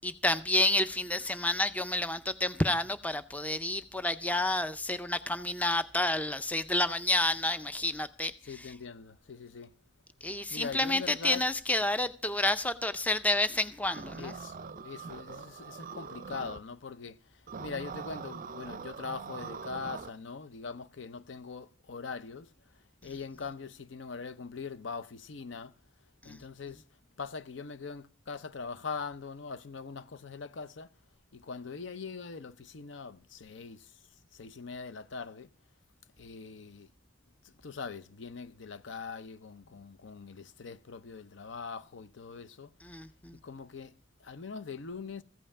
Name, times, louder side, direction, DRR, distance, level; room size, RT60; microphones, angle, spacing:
voice 1, 0.0-8.7 10.2-14.3 26.2-26.4 42.8-43.4, left 2 dB, 10° left, 0.5 m, -30 dB
voice 2, 8.4-9.7 10.5-11.4 14.2-17.2 17.6-22.5 23.0-25.7 26.2-26.8 27.2-30.9 31.3-33.9 34.3-35.5 36.2-36.9 37.4-42.7 43.3-44.0 44.2-45.2, left 5 dB, 70° left, 0.6 m, -42 dB
sound 1, 13.8-16.6 17.5-20.1, right 5 dB, 45° right, 0.5 m, -43 dB
15.0 x 5.5 x 8.5 m
head